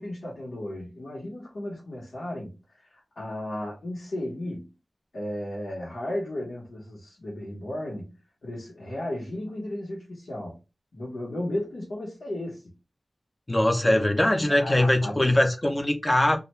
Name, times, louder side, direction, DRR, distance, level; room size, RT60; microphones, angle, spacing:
voice 1, 0.0-4.7 5.1-8.1 8.4-10.6 10.9-12.7 13.9-15.3, left 1 dB, 85° left, 1.1 m, -35 dB
voice 2, 13.5-16.4, left 1 dB, 25° left, 0.6 m, -22 dB
2.4 x 2.2 x 3.0 m
wide cardioid pair, 75°, 0 cm